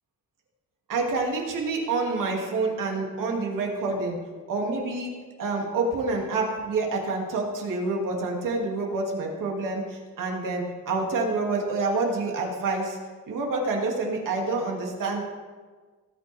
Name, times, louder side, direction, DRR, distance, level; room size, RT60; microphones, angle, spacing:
voice 1, 0.9-4.2 4.5-5.1 5.4-13.0 13.3-15.2, right 3 dB, 75° right, 0 dB, 2.5 m, -27 dB
18.5 x 9.0 x 3.5 m, 1.4 s
wide cardioid pair, 170°, 32 cm